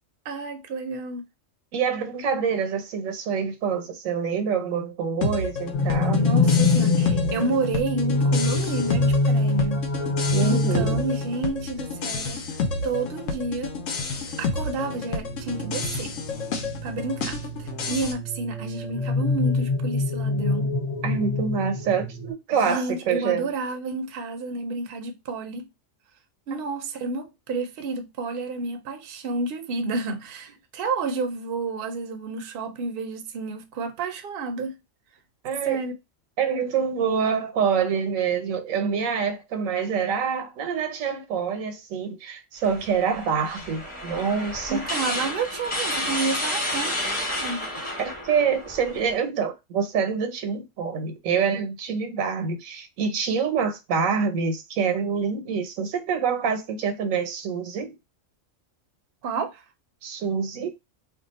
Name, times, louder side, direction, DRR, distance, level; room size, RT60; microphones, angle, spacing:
voice 1, 0.3-1.2 6.2-9.9 10.4-12.4 12.8-13.8 14.4-16.1 16.8-20.7 22.7-25.7 26.5-34.8 35.6-35.9 44.7-47.7 59.2-59.6, right 3 dB, 55° right, 0.7 m, -30 dB
voice 2, 1.7-6.3 10.3-11.0 21.0-23.5 26.5-26.6 35.4-35.8 36.4-44.8 48.0-57.9 60.0-60.7, right 6 dB, 90° right, 1.1 m, -26 dB
sound 1, 5.2-18.1, left 3 dB, 75° left, 1.0 m, -30 dB
sound 2, 5.7-11.4 14.6-22.3, left 3 dB, 35° left, 0.9 m, -25 dB
sound 3, 42.6-49.1, left 1 dB, 10° left, 0.9 m, -31 dB
2.6 x 2.4 x 3.9 m
omnidirectional pair, 1.3 m